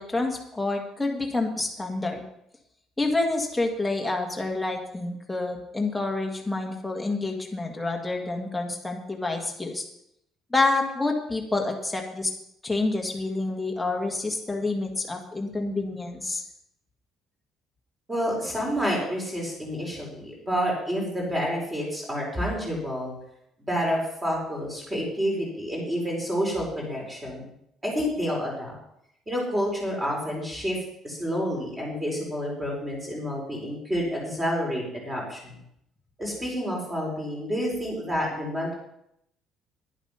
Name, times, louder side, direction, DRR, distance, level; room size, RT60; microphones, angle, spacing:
voice 1, 0.0-2.2 3.0-9.8 10.5-12.3 12.6-16.4, left 2 dB, 5° left, 1 dB, 1.8 m, -28 dB
voice 2, 18.1-23.1 23.7-27.5 27.8-28.8 29.3-30.8 31.0-35.6 36.2-38.7, equal, 15° right, -2 dB, 4.3 m, -29 dB
11.0 x 10.5 x 5.6 m, 0.76 s
cardioid pair, 170°, 0 cm